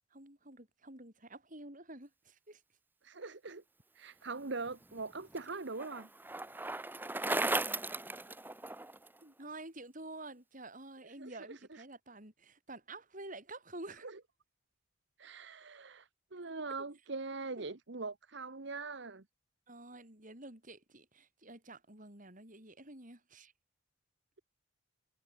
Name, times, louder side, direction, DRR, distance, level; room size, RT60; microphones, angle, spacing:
voice 1, 0.1-2.6 9.2-14.1 17.6-17.7 19.7-23.5, right 2 dB, 40° right, 6.4 m, -49 dB
voice 2, 3.0-3.6 3.9-6.1 11.2-11.8 14.0-14.1 15.2-19.2, right 3 dB, 60° right, 1.2 m, -42 dB
Bicycle, 4.7-9.1, right 2 dB, 10° right, 1.1 m, -37 dB
head